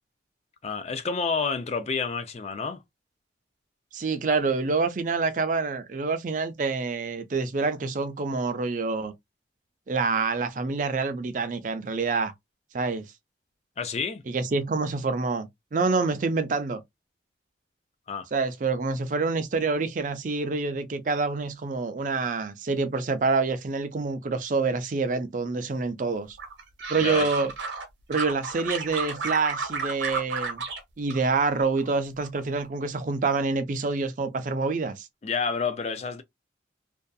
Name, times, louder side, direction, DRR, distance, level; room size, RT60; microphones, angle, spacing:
voice 1, 0.6-2.8 13.8-14.2 18.1-18.3 27.0-27.3 35.2-36.2, left 5 dB, 35° left, 0.3 m, -29 dB
voice 2, 3.9-9.1 9.9-12.3 12.7-13.0 14.3-16.8 18.3-26.4 26.9-27.5 28.1-30.6 31.0-35.1, right 4 dB, 45° right, 0.4 m, -27 dB
sound 1, 26.4-27.8 28.1-30.8 31.1-31.9 32.2-32.6, right 4 dB, 85° right, 0.9 m, -32 dB
2.6 x 2.3 x 2.2 m
head